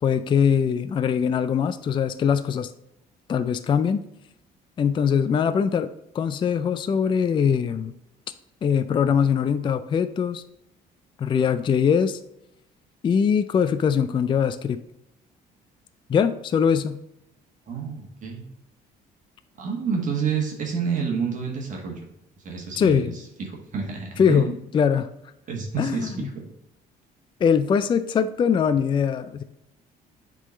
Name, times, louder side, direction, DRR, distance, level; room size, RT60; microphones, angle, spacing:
voice 1, 0.0-2.7 3.3-4.0 4.8-5.9 6.1-7.9 8.6-10.4 11.2-12.2 13.0-14.8 16.1-17.0 22.8-23.1 24.2-25.1 25.8-26.3 27.4-29.4, left 7 dB, 30° left, 11 dB, 0.3 m, -22 dB
voice 2, 17.7-18.4 19.6-22.1 22.4-24.5 25.5-26.4, right 6 dB, 50° right, 0 dB, 1.5 m, -29 dB
8.0 x 3.8 x 3.9 m, 0.83 s
cardioid pair, 110°, 17 cm